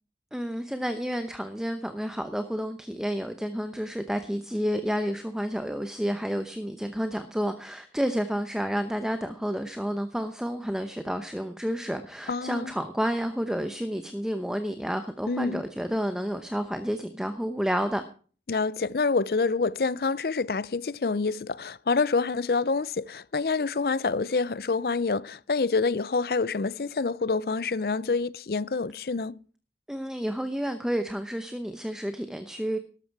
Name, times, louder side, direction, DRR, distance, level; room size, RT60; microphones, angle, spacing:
voice 1, 0.3-18.0 29.9-32.8, equal, 5° right, 0.8 m, -30 dB
voice 2, 12.3-12.7 15.3-15.6 18.5-29.4, left 4 dB, 55° left, 0.5 m, -27 dB
13.0 x 12.5 x 4.7 m
head